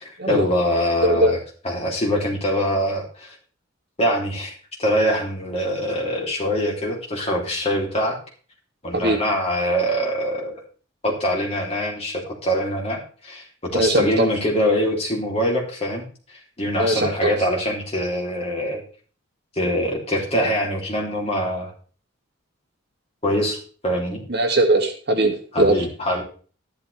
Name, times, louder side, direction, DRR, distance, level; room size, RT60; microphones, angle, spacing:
voice 1, 0.0-1.4 1.6-3.3 4.0-8.2 8.8-10.6 11.0-16.0 16.6-18.8 19.6-21.7 23.2-23.6 23.8-24.2 25.5-26.2, equal, 30° left, -1 dB, 3.1 m, -23 dB
voice 2, 1.0-1.3 8.9-9.2 13.7-14.3 16.8-17.3 24.3-25.9, right 1 dB, 55° right, 2 dB, 2.3 m, -20 dB
12.5 x 11.5 x 3.4 m, 0.40 s
head